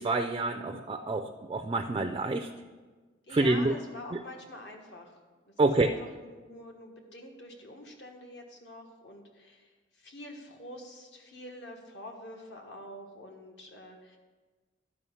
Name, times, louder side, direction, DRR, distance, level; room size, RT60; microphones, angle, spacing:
voice 1, 0.0-2.5 3.3-3.7 4.1-4.2 5.6-5.9, right 2 dB, 25° right, 5 dB, 0.3 m, -27 dB
voice 2, 3.3-5.2 5.6-14.2, left 1 dB, 65° left, 2 dB, 1.4 m, -46 dB
11.5 x 5.0 x 5.5 m, 1.3 s
head